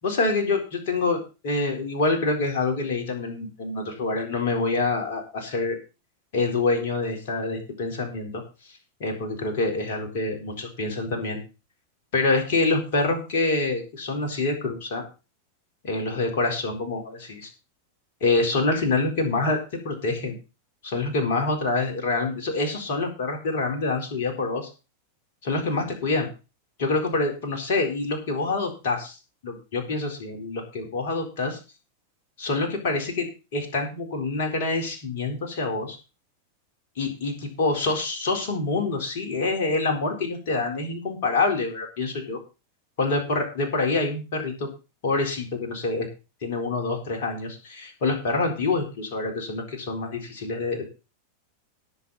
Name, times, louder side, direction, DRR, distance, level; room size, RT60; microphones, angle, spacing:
voice 1, 0.0-5.8 6.3-8.4 9.0-11.4 12.1-15.0 15.8-17.5 18.2-19.6 19.8-20.3 20.8-24.7 25.4-26.3 26.8-29.2 29.4-31.6 32.4-36.0 37.0-42.4 43.0-44.7 45.0-46.1 46.4-50.8, left 3 dB, 50° left, 3 dB, 4.2 m, -26 dB
18.0 x 6.9 x 4.2 m, 0.31 s
figure-of-eight pair, 90°, 0 cm